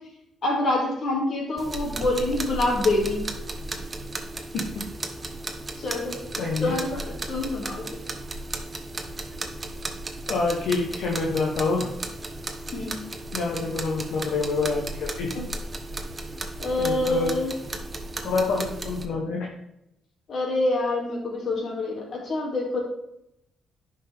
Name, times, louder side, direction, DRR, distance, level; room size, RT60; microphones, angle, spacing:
voice 1, 0.4-3.2 5.8-6.2 6.6-8.0 12.7-13.0 16.6-17.5 20.3-22.8, left 2 dB, 55° left, -1 dB, 2.7 m, -26 dB
Ticking Timer, 1.6-19.0, right 2 dB, 25° right, 1.0 m, -35 dB
voice 2, 4.5-4.8 6.4-6.7 10.3-11.9 13.3-15.4 16.8-17.3 18.2-19.5, left 3 dB, 80° left, -2 dB, 1.2 m, -27 dB
10.5 x 5.2 x 3.6 m, 0.81 s
cardioid pair, 90°, 0 cm